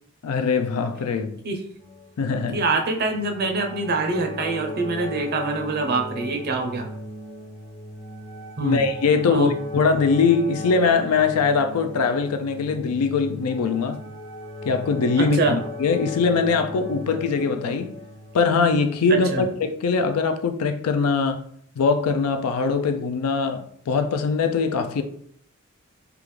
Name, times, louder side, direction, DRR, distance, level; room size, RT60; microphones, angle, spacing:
voice 1, 0.2-1.4 2.2-2.6 8.6-14.0 14.6-17.9 18.3-21.4 21.8-25.0, left 4 dB, 85° left, 0.4 m, -22 dB
sound 1, 1.8-19.1 20.1-20.3, left 1 dB, 25° left, 0.5 m, -37 dB
voice 2, 2.5-6.9 8.6-8.8 9.3-9.5 15.2-15.6 19.1-19.4, right 3 dB, 45° right, 0.5 m, -25 dB
3.4 x 2.4 x 3.2 m
head